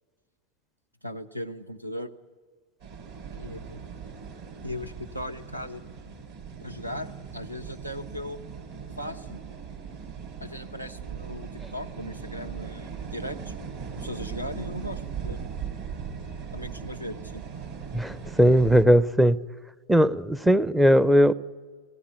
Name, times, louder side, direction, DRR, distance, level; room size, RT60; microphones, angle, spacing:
voice 1, 1.0-2.1 3.3-3.8 4.6-5.8 6.6-8.4 9.0-9.4 10.4-13.5 14.0-15.4 16.5-17.4, left 1 dB, 85° right, 13 dB, 1.0 m, -38 dB
sound 1, 2.8-18.8, right 6 dB, 55° right, 3.7 m, -39 dB
voice 2, 17.9-19.4 19.9-21.3, equal, 5° right, 19 dB, 0.6 m, -19 dB
19.0 x 17.0 x 9.8 m, 1.5 s
figure-of-eight pair, 90°, 0 cm